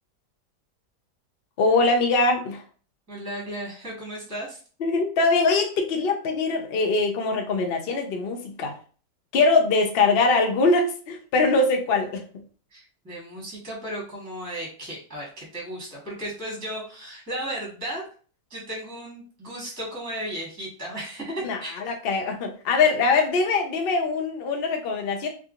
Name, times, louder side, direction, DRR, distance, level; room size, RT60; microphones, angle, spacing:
voice 1, 1.6-2.6 4.8-8.7 9.3-12.2 21.4-25.3, left 3 dB, 65° left, 3 dB, 0.6 m, -22 dB
voice 2, 3.1-4.6 12.7-18.0 18.5-21.9, right 1 dB, 10° right, -3 dB, 1.0 m, -35 dB
3.6 x 3.0 x 2.5 m, 0.40 s
omnidirectional pair, 1.9 m